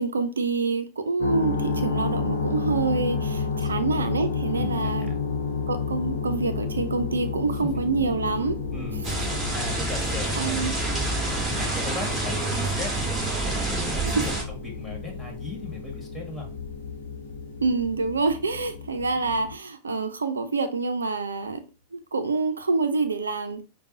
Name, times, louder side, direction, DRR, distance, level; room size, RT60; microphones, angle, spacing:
voice 1, 0.0-5.1 5.7-8.6 10.3-10.7 14.2-14.3 17.6-21.6 21.9-23.6, right 4 dB, 90° right, 0.5 m, -26 dB
sound 1, 1.2-19.5, left 5 dB, 70° left, 0.7 m, -31 dB
voice 2, 4.5-5.2 7.8-7.9 8.7-9.1 9.5-16.5, left 2 dB, 10° left, 1.8 m, -38 dB
sound 2, 9.0-14.4, right 3 dB, 10° right, 2.2 m, -28 dB
5.1 x 2.3 x 2.6 m
hypercardioid pair, 100°, 0 cm